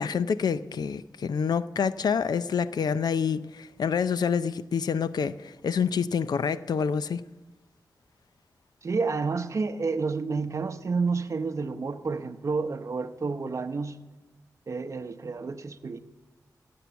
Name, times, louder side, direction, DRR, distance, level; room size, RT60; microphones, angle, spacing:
voice 1, 0.0-7.2, left 6 dB, 85° left, 0.5 m, -27 dB
voice 2, 8.8-14.0 14.7-16.0, right 4 dB, 50° right, 0.8 m, -30 dB
16.5 x 7.8 x 7.0 m
wide cardioid pair, 120°, 7 cm